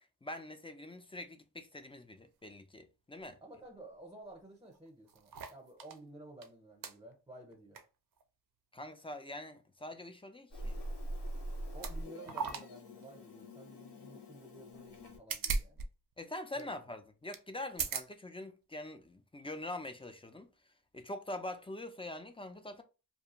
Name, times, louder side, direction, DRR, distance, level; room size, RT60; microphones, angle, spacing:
voice 1, 0.0-3.4 8.7-10.8 16.2-20.5 20.9-22.8, left 1 dB, 15° left, 0.3 m, -44 dB
voice 2, 3.4-7.8 11.7-15.9 16.5-17.0, right 2 dB, 10° right, 0.7 m, -53 dB
sound 1, 4.3-4.4 4.7-6.0 6.4-6.5 6.8-7.0 7.5-7.9 8.2-8.3 11.0-11.1 11.7-12.0 12.2-12.7 13.0-13.1 14.9-15.9 16.1-16.2 16.6-16.7 17.3-17.4 17.7-18.1 18.8-18.9, right 5 dB, 55° right, 0.5 m, -38 dB
Meow, 10.5-15.2, right 1 dB, 70° left, 0.9 m, -43 dB
2.5 x 2.2 x 2.9 m
cardioid pair, 60°, 42 cm